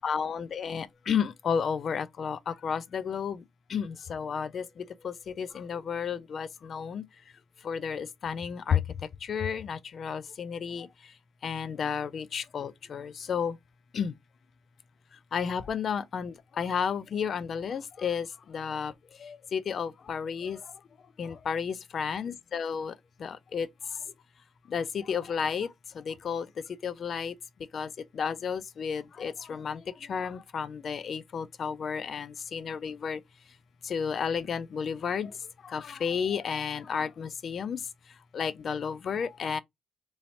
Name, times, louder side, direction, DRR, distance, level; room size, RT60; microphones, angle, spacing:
voice 1, 0.0-3.4 3.7-7.0 7.6-8.8 9.2-10.9 11.4-13.6 13.9-14.1 15.3-18.9 19.2-20.6 21.2-22.9 23.2-23.7 24.7-25.7 26.0-26.5 26.8-27.3 27.7-29.8 30.1-33.2 33.8-35.3 35.6-37.8 38.3-39.6, left 7 dB, 55° left, 0.3 m, -32 dB
3.1 x 2.6 x 2.7 m
cardioid pair, 90°, 0 cm